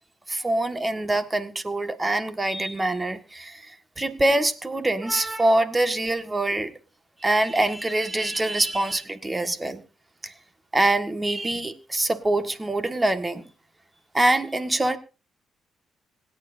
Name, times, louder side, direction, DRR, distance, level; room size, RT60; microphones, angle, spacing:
voice 1, 0.3-6.7 7.2-9.8 10.2-10.3 10.7-13.4 14.1-15.0, right 1 dB, 20° right, 9 dB, 1.7 m, -24 dB
26.0 x 9.4 x 2.7 m, 0.32 s
cardioid pair, 90°, 0 cm